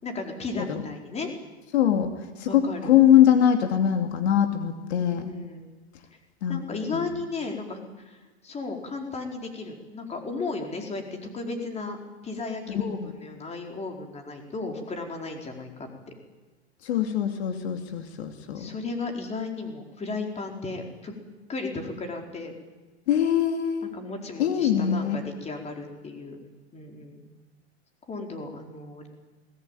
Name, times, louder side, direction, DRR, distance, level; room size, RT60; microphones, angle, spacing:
voice 1, 0.0-1.3 2.5-3.0 5.2-5.7 6.5-8.2 8.4-12.0 12.2-16.1 18.5-21.1 21.5-22.6 23.8-26.4 26.7-27.2 28.1-29.1, left 3 dB, 20° left, 3 dB, 4.5 m, -35 dB
voice 2, 1.7-2.1 2.4-5.3 6.4-6.6 6.9-7.1 12.7-13.1 16.8-18.7 23.1-23.9 24.4-25.2, left 10 dB, 70° left, 6 dB, 2.5 m, -22 dB
21.0 x 20.0 x 9.1 m, 1.2 s
hypercardioid pair, 120°, 34 cm